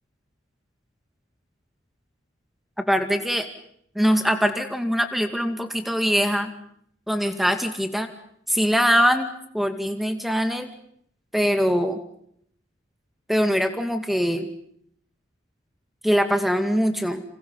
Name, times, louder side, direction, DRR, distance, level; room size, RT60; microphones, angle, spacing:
voice 1, 2.8-3.5 4.0-6.5 7.1-8.1 8.5-10.7 11.3-12.0 13.3-14.5 16.0-17.2, equal, ahead, 7 dB, 2.2 m, -22 dB
30.0 x 27.5 x 5.6 m, 0.68 s
head